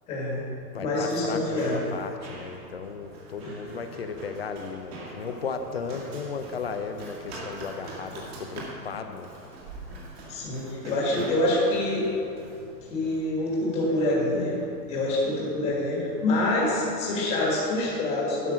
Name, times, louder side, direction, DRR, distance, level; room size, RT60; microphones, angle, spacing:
voice 1, 0.1-0.4 0.8-1.8 3.4-3.5 10.3-12.1 12.9-14.6 14.9-18.5, left 1 dB, 10° left, -5 dB, 1.5 m, -26 dB
Run, 0.5-17.8, right 2 dB, 40° right, 2.0 m, -45 dB
voice 2, 0.7-9.3, left 5 dB, 40° left, 7 dB, 0.5 m, -35 dB
11.0 x 6.0 x 6.2 m, 2.5 s
hypercardioid pair, 170°, 49 cm